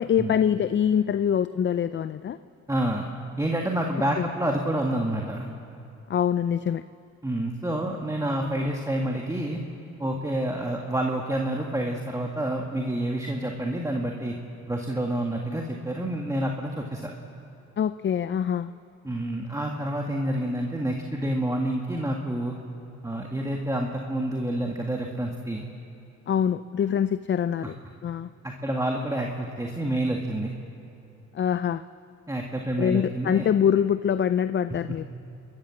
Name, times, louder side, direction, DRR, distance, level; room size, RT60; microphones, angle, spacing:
voice 1, 0.0-2.4 4.2-4.3 6.1-6.8 17.8-18.7 26.3-27.8 28.0-28.3 31.3-31.8 32.8-35.1, left 8 dB, 40° left, 13 dB, 0.5 m, -24 dB
voice 2, 2.7-3.1 3.4-5.5 7.2-9.6 10.0-14.4 14.7-17.1 19.0-22.6 23.0-25.6 27.6-27.7 28.4-30.5 32.3-33.5, right 1 dB, 10° right, 0 dB, 1.9 m, -28 dB
30.0 x 14.0 x 7.5 m, 2.7 s
cardioid pair, 90°, 30 cm